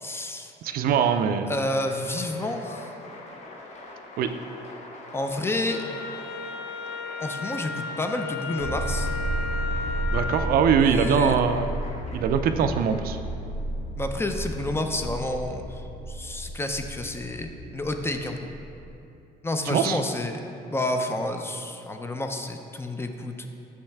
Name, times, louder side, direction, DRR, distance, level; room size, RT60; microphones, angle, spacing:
voice 1, 0.0-0.5 1.5-2.9 5.1-5.8 7.2-9.1 10.8-11.4 14.0-18.5 19.4-20.4 20.7-23.5, left 1 dB, 15° left, 5 dB, 0.4 m, -30 dB
voice 2, 0.6-1.5 4.2-4.3 10.1-11.7 12.1-13.2 19.7-20.0, right 7 dB, 60° right, 8 dB, 0.4 m, -22 dB
Applause, 1.5-13.4, left 2 dB, 45° left, 0.9 m, -45 dB
Wind instrument woodwind instrument, 5.7-10.6, left 3 dB, 80° left, 0.5 m, -34 dB
sound 1, 8.6-18.9, right 1 dB, 65° left, 1.3 m, -32 dB
6.3 x 5.5 x 3.4 m, 2.8 s
cardioid pair, 110°, 17 cm